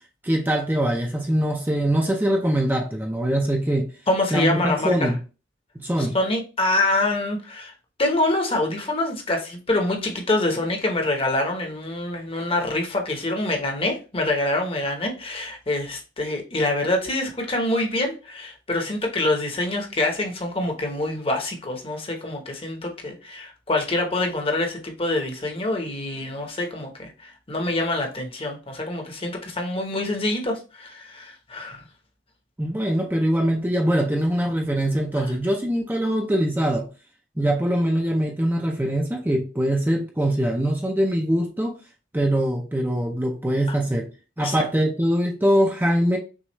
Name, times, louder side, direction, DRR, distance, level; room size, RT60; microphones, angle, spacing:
voice 1, 0.2-3.9 4.3-5.2 5.8-6.2 32.6-36.9 37.4-41.7 42.1-44.1 44.4-46.2, equal, 10° right, 0.6 m, -23 dB
voice 2, 4.1-5.1 6.0-7.7 8.0-31.8 35.2-35.3 43.7-43.8 44.4-44.6, left 2 dB, 30° left, 1.0 m, -25 dB
6.2 x 2.4 x 3.1 m
head